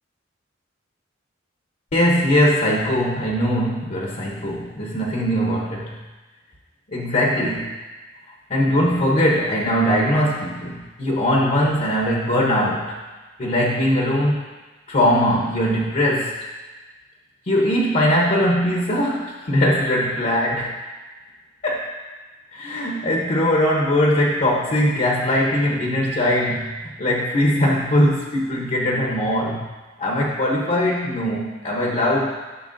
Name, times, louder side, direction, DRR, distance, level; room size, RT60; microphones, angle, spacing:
voice 1, 1.9-6.0 6.9-7.7 8.5-13.0 13.4-14.4 14.9-16.3 17.5-20.7 21.6-21.9 22.5-29.6 30.0-32.4, equal, 45° left, -2 dB, 0.8 m, -20 dB
11.0 x 6.0 x 2.6 m, 1.3 s
head